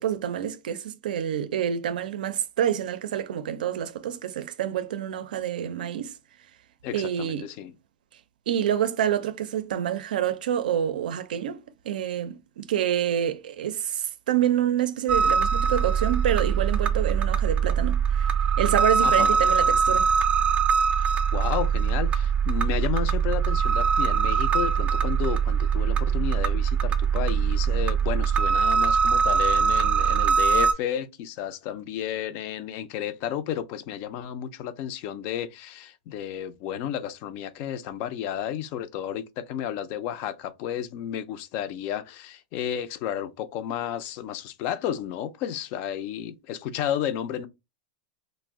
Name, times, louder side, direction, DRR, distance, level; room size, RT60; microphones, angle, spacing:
voice 1, 0.0-6.2 6.9-7.5 8.5-18.3 18.6-20.1, right 10 dB, 80° right, 0.4 m, -27 dB
voice 2, 6.8-7.7 19.0-19.4 21.0-47.5, left 10 dB, 40° left, 0.4 m, -32 dB
sound 1, 15.1-30.7, right 6 dB, 25° right, 0.5 m, -22 dB
2.5 x 2.0 x 3.5 m
supercardioid pair, 145°, 5 cm